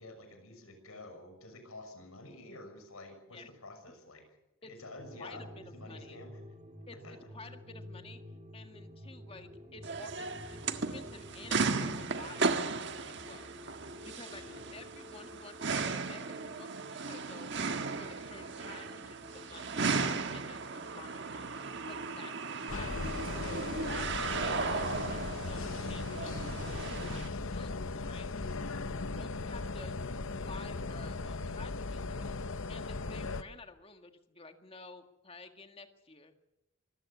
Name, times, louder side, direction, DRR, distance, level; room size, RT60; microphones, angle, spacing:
voice 1, 0.0-4.2 4.6-5.5 5.7-6.4 6.9-7.2 14.3-14.9, left 2 dB, 90° left, 6 dB, 6.6 m, -50 dB
sound 1, 5.0-22.1, equal, 30° right, 2.5 m, -51 dB
voice 2, 5.1-6.2 6.9-8.2 8.5-13.5 14.0-14.4 14.7-17.5 17.8-23.1 23.8-28.3 29.1-32.3 32.7-36.3, left 3 dB, 25° left, 7 dB, 1.7 m, -52 dB
sound 2, 9.8-27.3, right 4 dB, 55° right, 1.4 m, -36 dB
sound 3, 22.7-33.4, left 3 dB, 70° left, 0.9 m, -38 dB
25.0 x 15.0 x 8.4 m, 0.93 s
head